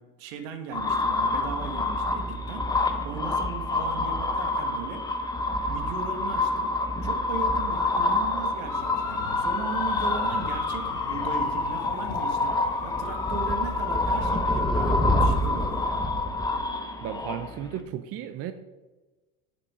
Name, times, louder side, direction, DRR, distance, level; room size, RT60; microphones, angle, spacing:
voice 1, 0.0-2.7 3.0-5.1 5.7-6.7 7.0-15.7, right 6 dB, 65° right, 7 dB, 1.3 m, -37 dB
sound 1, 0.7-17.8, left 2 dB, 10° left, 0.7 m, -27 dB
sound 2, 8.7-16.0, left 7 dB, 45° left, 1.2 m, -37 dB
voice 2, 17.0-18.5, right 10 dB, 35° right, 10 dB, 0.5 m, -34 dB
7.0 x 6.7 x 4.2 m, 1.2 s
hypercardioid pair, 95°, 45 cm